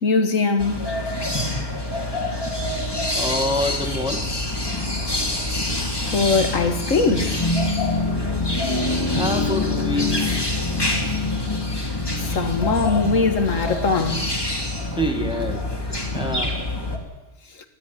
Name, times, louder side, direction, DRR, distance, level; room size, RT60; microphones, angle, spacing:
voice 1, 0.0-0.8 6.0-7.4 12.2-14.3, left 4 dB, 80° left, 2.2 m, -21 dB
sound 1, 0.6-17.0, left 2 dB, 20° left, 2.9 m, -25 dB
voice 2, 3.2-4.2 8.2-8.3 9.1-10.3 15.0-15.6 16.1-16.6, left 1 dB, 5° right, 2.0 m, -26 dB
19.0 x 14.5 x 10.0 m
omnidirectional pair, 1.3 m